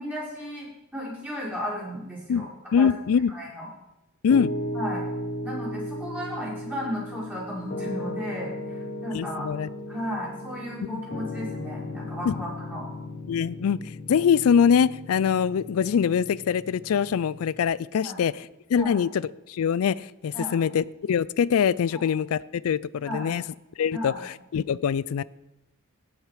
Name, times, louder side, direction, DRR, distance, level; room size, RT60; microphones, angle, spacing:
voice 1, 0.0-2.5 2.8-2.9 3.3-3.7 4.7-5.0 5.4-9.5 9.9-12.9 18.0-18.2 18.7-19.0 20.3-20.6 21.9-22.0 23.0-23.4 23.9-24.2, equal, 10° right, -7 dB, 5.1 m, -34 dB
voice 2, 2.7-3.3 4.2-4.5 9.1-9.7 10.8-11.0 12.2-12.4 13.3-13.8 14.1-19.2 19.5-23.4 23.8-25.2, left 7 dB, 70° left, 21 dB, 0.4 m, -23 dB
Piano, 4.3-17.6, left 1 dB, 45° left, 1.3 m, -36 dB
17.0 x 6.4 x 4.9 m, 0.94 s
head